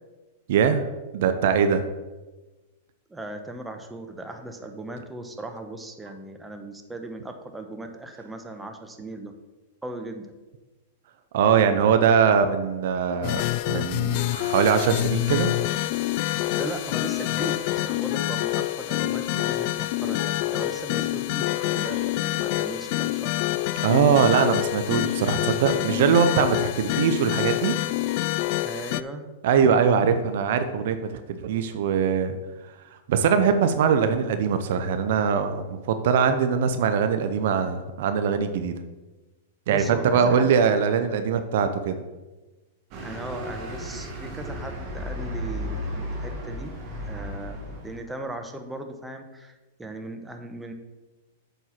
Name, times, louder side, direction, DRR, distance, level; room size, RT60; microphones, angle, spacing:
voice 1, 0.5-1.9 11.3-13.4 13.7-15.5 23.8-27.8 29.4-32.4 33.1-38.7 39.7-42.0, right 7 dB, 65° right, 9 dB, 0.6 m, -22 dB
voice 2, 3.1-9.3 9.8-10.3 16.5-23.3 28.6-29.2 39.7-40.6 43.0-46.7 47.1-50.7, right 2 dB, 10° right, 5 dB, 1.0 m, -38 dB
sound 1, 13.2-29.0, left 16 dB, 50° left, 0.3 m, -26 dB
sound 2, 42.9-48.0, equal, 45° right, 1.8 m, -34 dB
8.0 x 4.6 x 5.8 m, 1.2 s
hypercardioid pair, 110°, 0 cm